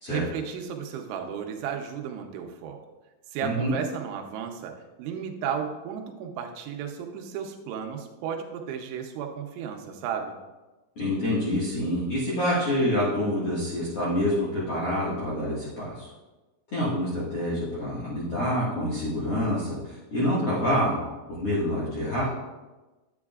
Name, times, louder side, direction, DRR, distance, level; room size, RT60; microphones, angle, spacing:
voice 1, 0.1-2.9 3.3-10.3, right 8 dB, 90° right, 3 dB, 3.2 m, -34 dB
voice 2, 3.4-3.7 11.0-16.1 16.7-21.0 21.3-22.3, equal, 50° left, -9 dB, 1.8 m, -27 dB
9.6 x 9.0 x 2.4 m, 1.2 s
omnidirectional pair, 5.2 m